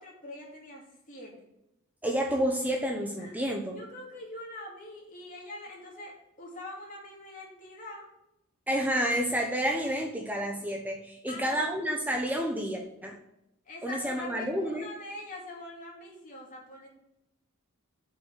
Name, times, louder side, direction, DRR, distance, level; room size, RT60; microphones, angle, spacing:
voice 1, 0.0-1.3 3.2-8.1 11.3-11.8 13.6-16.9, left 2 dB, 40° left, -2 dB, 2.7 m, -44 dB
voice 2, 2.0-3.8 8.7-13.2 13.8-14.9, equal, 10° right, 1 dB, 0.9 m, -30 dB
7.5 x 5.6 x 6.7 m, 0.86 s
head